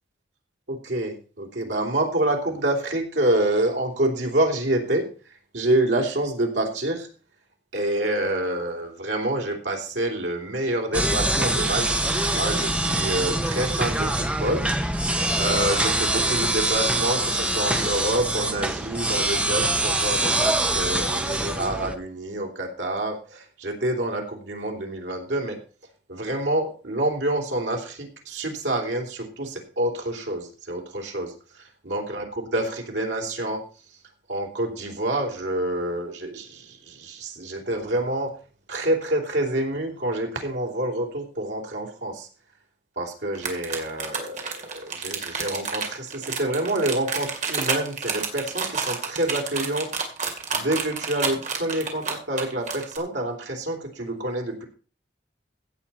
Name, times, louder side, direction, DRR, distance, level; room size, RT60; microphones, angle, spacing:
voice 1, 0.7-5.1 5.5-7.1 7.7-14.6 15.3-25.6 26.1-33.6 34.3-38.3 38.7-42.3 43.0-50.0 50.5-54.7, right 1 dB, 85° right, 1 dB, 3.2 m, -27 dB
sound 1, 10.9-21.9, right 1 dB, 5° right, 0.9 m, -24 dB
sound 2, 43.3-53.0, right 5 dB, 45° right, 2.5 m, -29 dB
16.0 x 7.4 x 4.3 m, 0.38 s
head